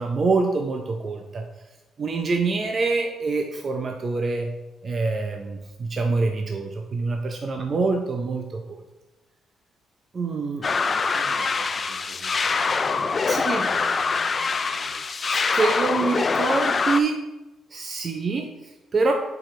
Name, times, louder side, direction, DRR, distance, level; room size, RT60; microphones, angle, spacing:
voice 1, 0.0-1.4 2.0-4.5 4.8-8.8 10.1-10.7 13.3-13.7 15.2-17.2 17.7-19.1, right 3 dB, 40° right, 3 dB, 0.7 m, -25 dB
sound 1, 10.6-17.0, left 4 dB, 35° left, 0.4 m, -24 dB
voice 2, 10.6-14.9, right 3 dB, 75° right, 2 dB, 1.4 m, -46 dB
7.8 x 4.9 x 3.2 m, 1.0 s
cardioid pair, 90°, 0 cm